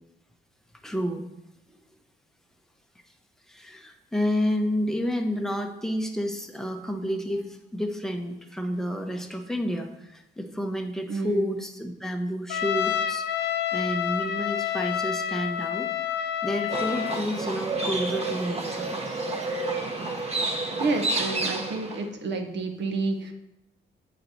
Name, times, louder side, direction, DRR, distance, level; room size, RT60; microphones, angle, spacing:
voice 1, 0.8-1.3 1.7-1.8 3.5-15.9 16.4-19.2, equal, ahead, 4 dB, 0.8 m, -30 dB
voice 2, 11.1-11.6 20.8-23.3, right 3 dB, 65° right, 5 dB, 1.0 m, -29 dB
Trumpet, 12.5-17.2, left 10 dB, 60° left, 0.5 m, -28 dB
Livestock farm animals working animals, 16.7-22.0, right 2 dB, 30° right, 1.0 m, -30 dB
7.6 x 4.1 x 4.5 m, 0.86 s
cardioid pair, 90°, 20 cm